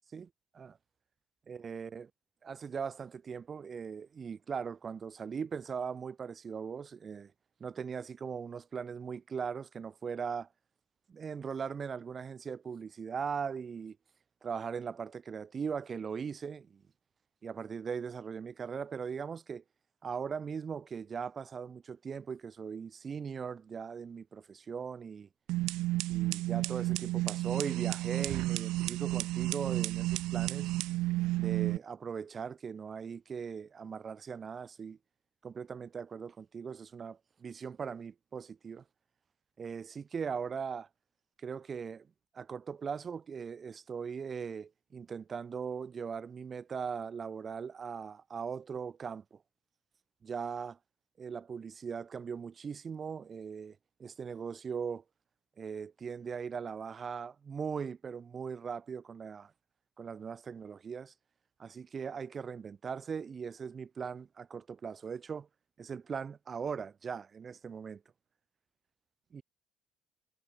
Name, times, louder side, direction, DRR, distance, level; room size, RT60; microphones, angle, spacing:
voice 1, 1.5-2.1 2.4-7.3 7.6-10.5 11.1-14.0 14.4-16.8 17.4-19.6 20.0-25.3 26.1-30.7 31.3-35.0 35.4-38.8 39.6-40.9 41.4-42.1 42.3-49.4 50.2-50.8 51.2-55.0 55.6-59.5 60.0-61.1 61.6-65.5 65.8-68.0 69.3-69.4, right 6 dB, 40° right, 3.4 m, -39 dB
sound 1, 25.5-31.8, right 18 dB, 65° right, 2.5 m, -32 dB
figure-of-eight pair, 55°, 0 cm